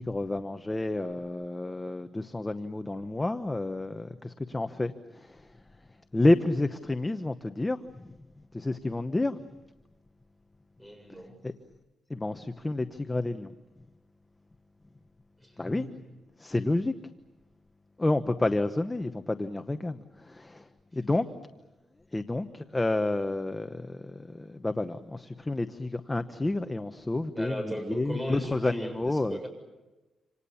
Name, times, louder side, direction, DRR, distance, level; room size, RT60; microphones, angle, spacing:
voice 1, 0.0-5.5 6.1-8.2 8.5-9.4 11.4-11.5 12.1-13.5 15.6-15.9 16.4-16.9 18.0-21.3 22.1-29.4, left 2 dB, 15° left, 9 dB, 0.9 m, -30 dB
voice 2, 10.8-11.4 15.4-16.1 27.3-29.5, equal, 10° right, 6 dB, 7.2 m, -37 dB
27.5 x 27.5 x 7.1 m, 1.1 s
cardioid pair, 110°, 0 cm